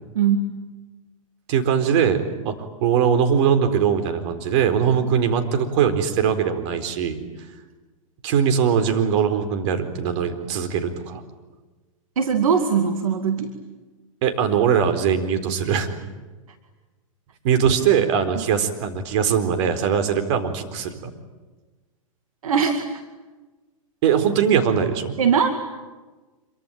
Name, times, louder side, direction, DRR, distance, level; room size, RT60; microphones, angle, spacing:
voice 1, 0.1-0.5 12.2-13.5 18.3-18.4 22.4-22.9 25.2-25.5, right 6 dB, 75° right, 6 dB, 2.3 m, -20 dB
voice 2, 1.5-2.5 2.8-7.2 8.2-11.2 14.2-15.9 17.4-20.9 24.0-25.1, right 7 dB, 55° right, 7 dB, 4.2 m, -21 dB
26.5 x 24.0 x 9.2 m, 1.2 s
hypercardioid pair, 115°, 18 cm